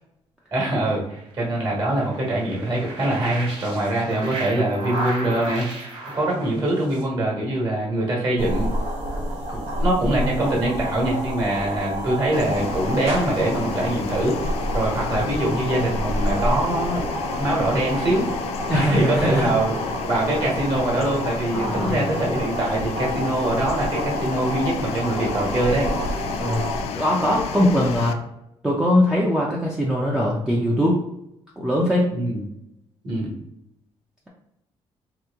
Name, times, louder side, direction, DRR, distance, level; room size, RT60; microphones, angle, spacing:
voice 1, 0.5-5.9 6.1-8.7 9.5-17.1 17.4-18.2 18.7-19.7 20.0-25.9 32.1-32.4 33.0-33.3, right 1 dB, 40° right, -2 dB, 1.3 m, -23 dB
sound 1, 1.3-7.0, right 2 dB, 60° right, 1.3 m, -33 dB
sound 2, 8.4-26.8, equal, 85° right, 1.0 m, -29 dB
sound 3, 12.3-28.1, left 7 dB, 75° left, 0.4 m, -32 dB
voice 2, 18.7-19.5 21.5-22.0 26.4-26.6 26.9-28.2 28.6-31.0 31.6-32.1, equal, 5° right, -4 dB, 0.4 m, -21 dB
3.0 x 2.8 x 3.4 m, 0.81 s
cardioid pair, 155°, 11 cm